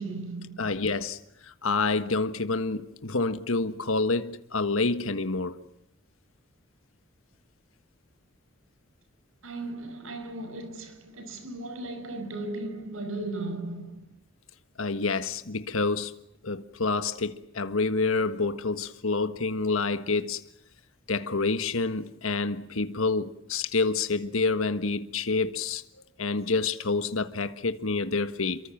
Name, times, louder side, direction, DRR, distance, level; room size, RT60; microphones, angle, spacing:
voice 1, 0.0-0.8 9.4-14.1, right 2 dB, 85° right, 5.3 m, -36 dB
voice 2, 0.6-5.5 14.8-16.1 16.4-20.4 21.1-25.8 26.2-28.6, left 3 dB, 90° left, 1.5 m, -28 dB
29.0 x 23.0 x 7.4 m
head